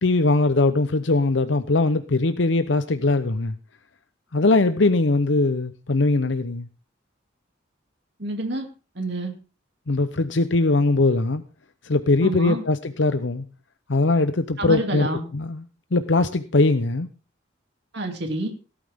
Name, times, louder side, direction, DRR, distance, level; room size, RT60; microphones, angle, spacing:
voice 1, 0.0-3.6 4.3-6.7 9.9-11.4 11.8-13.4 13.9-15.1 15.3-15.6 15.9-17.1, left 2 dB, 70° left, 0.8 m, -21 dB
voice 2, 8.2-8.7 8.9-9.3 12.2-12.6 14.6-15.2 17.9-18.5, right 1 dB, 60° right, 2.8 m, -28 dB
17.5 x 12.5 x 3.7 m
head